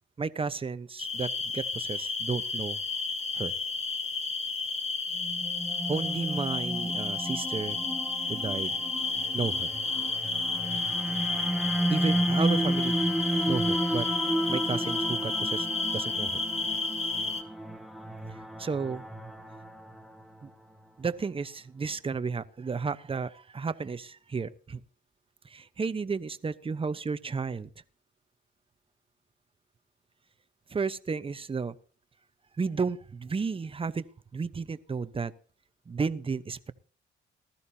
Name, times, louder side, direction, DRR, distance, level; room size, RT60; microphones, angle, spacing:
voice 1, 0.2-3.0 3.3-3.5 5.9-7.8 8.3-8.7 9.3-9.7 11.9-13.1 13.5-14.1 14.5-15.7 15.9-16.4 18.6-19.1 20.4-20.5 21.0-24.8 25.4-27.7 30.7-31.8 32.6-34.1 34.3-35.3 35.9-36.7, right 5 dB, 25° right, 13 dB, 0.9 m, -33 dB
sound 1, 1.0-17.4, left 3 dB, 30° left, 2.5 m, -32 dB
sound 2, 5.1-20.5, right 1 dB, ahead, 1.3 m, -32 dB
19.5 x 13.5 x 2.8 m, 0.41 s
cardioid pair, 90°, 20 cm